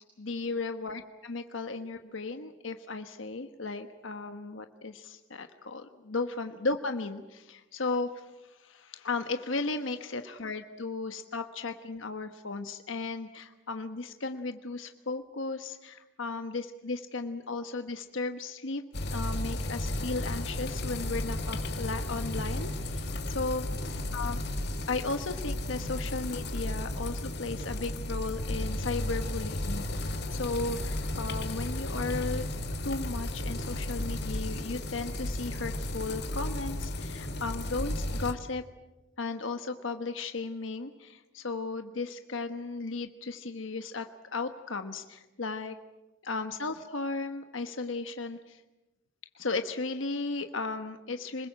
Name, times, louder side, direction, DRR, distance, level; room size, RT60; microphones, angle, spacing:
voice 1, 0.2-18.8 19.1-24.4 24.9-32.5 32.8-38.6 39.2-44.1 44.3-45.8 46.2-48.6 49.3-51.5, left 3 dB, 75° left, 7 dB, 1.2 m, -35 dB
sound 1, 18.9-38.3, left 1 dB, 55° left, 2.3 m, -34 dB
26.5 x 20.5 x 7.6 m, 1.0 s
head